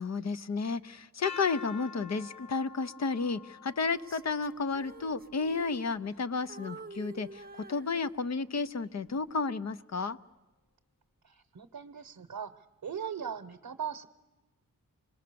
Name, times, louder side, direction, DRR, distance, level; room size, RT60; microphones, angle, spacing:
voice 1, 0.0-10.2, left 4 dB, 50° left, 14 dB, 0.7 m, -32 dB
sound 1, 1.2-7.1, left 5 dB, 20° left, 0.9 m, -48 dB
Female singing, 3.9-6.2 6.5-8.5 9.1-9.3, right 3 dB, 25° right, 0.7 m, -49 dB
voice 2, 11.2-14.1, right 8 dB, 70° right, 6 dB, 0.8 m, -39 dB
25.5 x 20.5 x 6.9 m, 1.1 s
wide cardioid pair, 65°, 34 cm